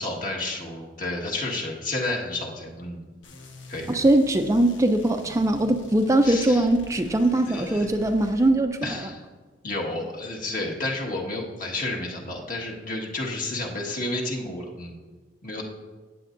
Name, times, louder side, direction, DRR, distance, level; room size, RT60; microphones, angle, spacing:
voice 1, 0.0-3.1 3.7-4.0 6.2-6.7 7.5-7.9 8.8-9.2 9.6-14.9 15.4-15.6, left 2 dB, 45° left, -2 dB, 1.6 m, -31 dB
sound 1, 3.2-8.5, left 1 dB, 85° left, 1.1 m, -46 dB
voice 2, 3.9-9.1, right 1 dB, 15° right, 6 dB, 0.4 m, -21 dB
15.5 x 9.3 x 2.6 m, 1.4 s
head